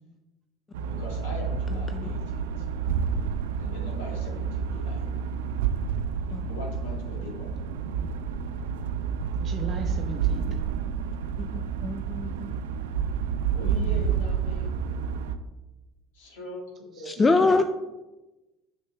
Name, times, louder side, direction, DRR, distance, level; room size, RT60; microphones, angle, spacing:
sound 1, 0.7-15.4, right 6 dB, 90° right, 0.4 m, -29 dB
voice 1, 0.9-2.7 3.6-5.1 6.5-7.5 10.4-10.6 13.5-14.8 16.1-17.5, left 2 dB, 85° left, -1 dB, 1.8 m, -41 dB
voice 2, 9.4-10.5 17.0-17.6, right 5 dB, 45° right, 3 dB, 0.6 m, -38 dB
voice 3, 11.4-12.6 17.1-17.6, left 3 dB, 25° left, 8 dB, 0.4 m, -24 dB
6.2 x 6.2 x 3.3 m, 1.1 s
supercardioid pair, 85°, 0 cm